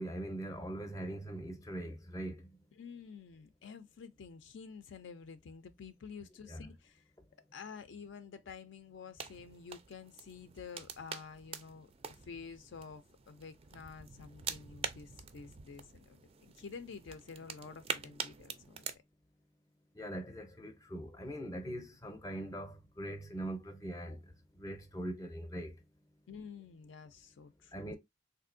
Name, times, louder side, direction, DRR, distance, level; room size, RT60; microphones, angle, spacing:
voice 1, 0.0-2.3 6.5-6.6 20.0-24.2 24.6-25.7 27.7-28.0, right 1 dB, 15° left, 0.5 m, -41 dB
voice 2, 2.8-7.0 7.5-18.9 26.3-27.9, left 5 dB, 65° left, 0.4 m, -50 dB
sound 1, 9.2-19.0, right 6 dB, 30° right, 0.3 m, -45 dB
3.5 x 2.6 x 2.5 m
head